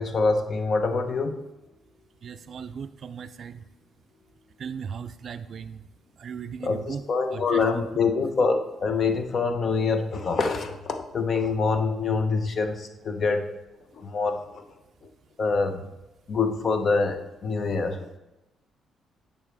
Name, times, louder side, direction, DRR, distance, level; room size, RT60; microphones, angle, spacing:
voice 1, 0.0-1.4 6.6-13.4 13.9-14.6 15.4-15.8 16.3-18.1, left 4 dB, 50° left, 6 dB, 0.9 m, -25 dB
voice 2, 2.2-3.6 4.6-5.8 6.2-7.1 7.3-7.8, right 6 dB, 55° right, 9 dB, 0.3 m, -37 dB
8.7 x 5.6 x 3.4 m, 0.99 s
cardioid pair, 90°, 0 cm